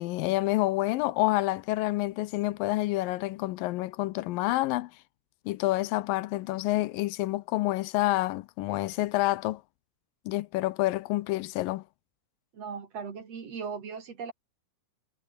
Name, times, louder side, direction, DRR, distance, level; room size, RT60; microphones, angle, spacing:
voice 1, 0.0-4.9 5.5-9.6 10.3-11.8, left 18 dB, 85° left, 2.4 m, -28 dB
voice 2, 12.5-14.3, right 6 dB, 50° right, 3.6 m, -38 dB
omnidirectional pair, 4.0 m